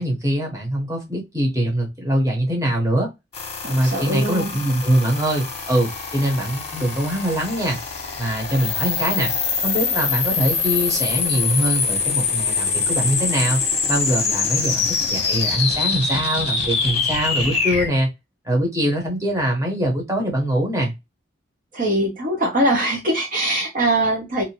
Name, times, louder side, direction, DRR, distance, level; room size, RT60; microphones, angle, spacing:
voice 1, 0.0-3.1 3.7-7.8 8.2-9.3 9.6-13.6 13.9-18.1 18.4-20.9, right 1 dB, 20° right, -1 dB, 1.1 m, -23 dB
sound 1, 3.3-17.9, left 5 dB, 35° left, 0.9 m, -24 dB
voice 2, 3.6-4.6 21.7-24.4, right 1 dB, 45° right, 0 dB, 0.8 m, -22 dB
2.7 x 2.4 x 2.9 m, 0.21 s
head